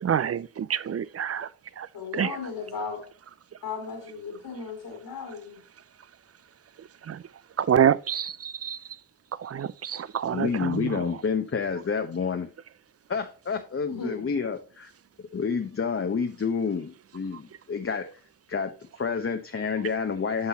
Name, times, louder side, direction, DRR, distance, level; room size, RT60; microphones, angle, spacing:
voice 1, 0.0-1.5 1.8-1.9 2.1-2.3 7.1-7.2 7.6-8.3 8.6-8.8 9.4-10.5, right 8 dB, 40° right, 0.5 m, -26 dB
voice 2, 1.9-3.0 3.6-5.6 13.9-14.3, left 5 dB, 75° left, 2.6 m, -36 dB
voice 3, 10.3-12.5 13.1-14.6 15.3-18.1 18.5-20.5, left 5 dB, 35° left, 0.9 m, -29 dB
9.7 x 5.5 x 2.9 m
supercardioid pair, 45°, 38 cm